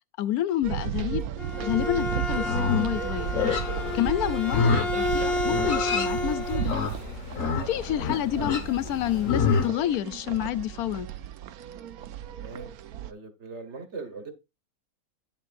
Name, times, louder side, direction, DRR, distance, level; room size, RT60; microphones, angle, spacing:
voice 1, 0.2-1.2 1.6-3.3 3.9-6.7 7.7-11.1, left 12 dB, 85° left, 1.1 m, -28 dB
sound 1, 0.6-13.1, right 10 dB, 80° right, 1.1 m, -35 dB
Bowed string instrument, 1.2-6.7, left 2 dB, 45° left, 1.4 m, -31 dB
Livestock farm animals working animals, 2.4-9.7, left 5 dB, 60° left, 1.6 m, -29 dB
voice 2, 12.3-12.7 13.0-14.3, right 4 dB, 50° right, 1.5 m, -40 dB
9.7 x 7.3 x 2.5 m
omnidirectional pair, 1.6 m